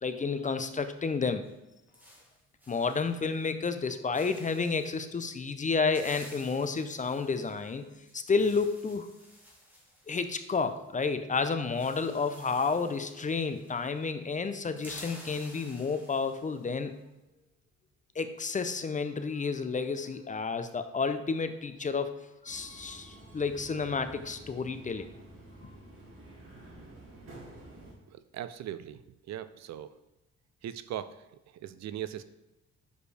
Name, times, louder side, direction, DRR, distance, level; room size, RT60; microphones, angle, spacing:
voice 1, 0.0-1.4 2.7-7.9 8.1-9.1 10.1-17.0 18.2-22.2 22.4-25.1, left 4 dB, 25° left, 9 dB, 0.5 m, -31 dB
sound 1, 1.4-3.4 3.7-3.9 4.1-5.0 5.6-11.1 11.3-11.4 11.6-14.0 14.3-16.7, equal, 5° right, 1.9 m, -53 dB
Subway metro underground, 22.4-27.9, right 2 dB, 45° right, 2.3 m, -50 dB
voice 2, 28.1-30.0 30.6-32.2, right 11 dB, 65° right, 13 dB, 0.5 m, -40 dB
6.4 x 5.0 x 3.3 m, 1.0 s
cardioid pair, 90°, 30 cm